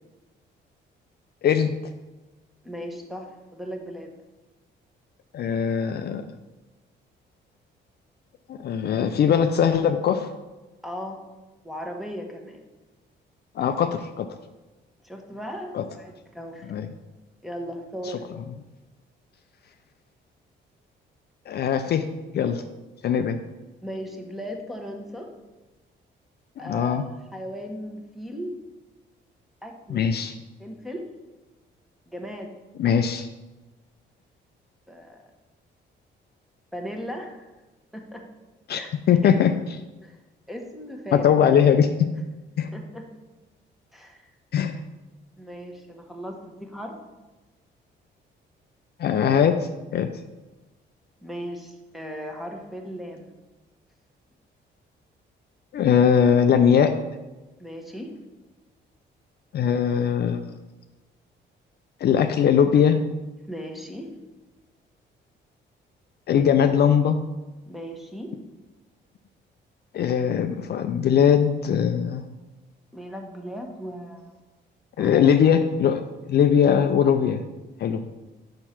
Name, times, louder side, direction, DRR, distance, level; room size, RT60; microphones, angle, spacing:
voice 1, 1.4-1.8 5.3-6.2 8.5-10.3 13.6-14.3 15.7-15.8 16.7-16.9 21.5-22.1 22.3-22.6 23.0-23.4 26.6-27.0 29.9-30.4 32.8-33.3 38.7-38.8 39.1-39.5 41.1-42.1 42.6-42.7 44.5-44.8 49.0-50.1 55.7-56.9 59.5-60.4 62.0-63.0 66.3-67.2 69.9-72.2 75.0-76.0 76.3-77.4 77.8-78.1, left 8 dB, 55° left, 8 dB, 0.4 m, -20 dB
voice 2, 2.6-4.1 10.8-11.2 11.6-12.7 15.0-16.7 17.4-18.2 23.8-25.3 26.6-28.5 29.6-30.1 30.6-31.0 32.1-32.5 34.9-35.2 36.7-37.5 37.9-38.2 38.7-38.9 39.2-39.3 40.0-40.2 40.5-41.4 42.7-43.1 43.9-44.3 45.4-47.0 51.2-53.4 57.6-58.1 63.4-64.1 67.7-68.3 72.9-74.4 75.0-75.3, equal, ahead, 1 dB, 1.2 m, -37 dB
5.5 x 4.5 x 5.7 m, 1.1 s
cardioid pair, 90°, 20 cm